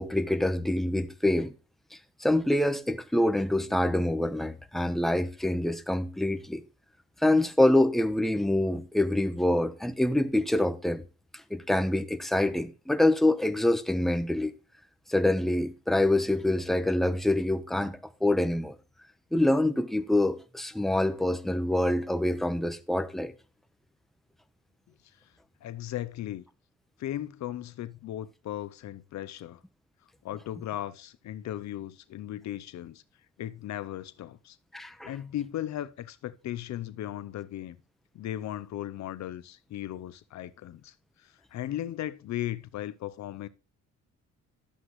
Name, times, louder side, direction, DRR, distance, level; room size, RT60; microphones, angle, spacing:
voice 1, 0.0-1.5 2.2-6.6 7.2-11.0 11.3-14.5 15.1-18.8 19.3-23.3 34.7-35.1, left 1 dB, ahead, 0.9 m, -26 dB
voice 2, 25.6-26.4 27.0-29.6 30.2-33.0 33.4-34.6 35.0-37.8 38.1-43.5, left 12 dB, 65° left, 0.6 m, -37 dB
12.0 x 7.9 x 3.1 m
cardioid pair, 90°, 30 cm